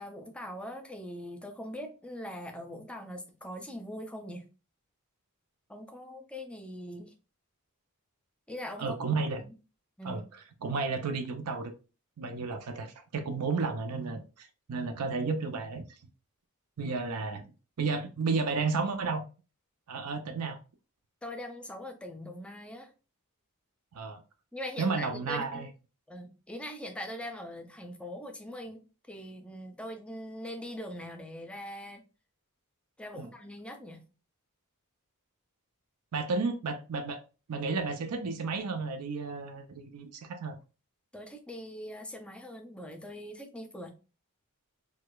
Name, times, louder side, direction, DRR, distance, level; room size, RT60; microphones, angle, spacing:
voice 1, 0.0-4.5 5.7-7.1 8.5-9.0 9.4-9.5 10.0-10.2 21.2-22.9 24.5-25.7 26.1-32.0 33.0-34.0 41.1-44.0, left 1 dB, 5° left, 0.4 m, -42 dB
voice 2, 8.8-9.4 10.0-10.2 10.6-11.7 12.2-15.8 16.8-19.2 19.9-20.6 23.9-24.2 24.8-25.7 33.2-33.3 36.1-37.2 37.5-40.6, right 4 dB, 85° right, 0.5 m, -32 dB
4.7 x 2.2 x 2.2 m
head